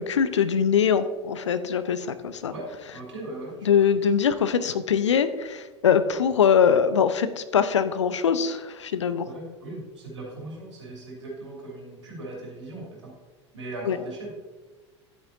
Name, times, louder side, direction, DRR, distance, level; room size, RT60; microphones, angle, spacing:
voice 1, 0.0-2.5 3.6-9.3 13.9-14.0, left 7 dB, 75° left, 12 dB, 0.6 m, -22 dB
voice 2, 2.5-3.8 9.2-13.1 13.5-14.3, right 2 dB, 75° right, -3 dB, 2.9 m, -38 dB
10.5 x 8.9 x 2.7 m, 1.3 s
figure-of-eight pair, 75°, 15 cm